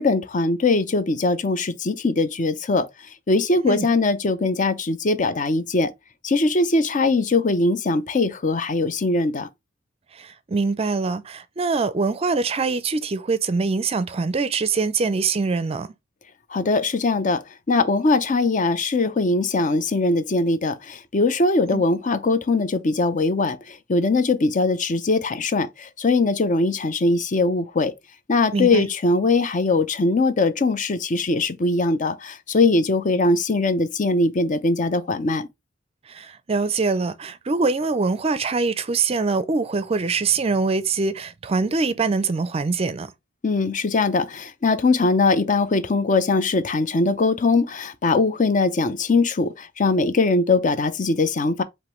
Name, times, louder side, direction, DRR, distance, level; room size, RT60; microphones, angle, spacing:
voice 1, 0.0-2.9 3.3-5.9 6.2-9.5 16.5-17.4 17.7-27.9 28.3-35.5 43.4-51.6, left 3 dB, 45° left, 0.6 m, -21 dB
voice 2, 10.2-15.9 21.6-21.8 28.5-28.8 36.1-43.1, right 4 dB, 30° right, 0.4 m, -23 dB
5.1 x 3.0 x 3.0 m
head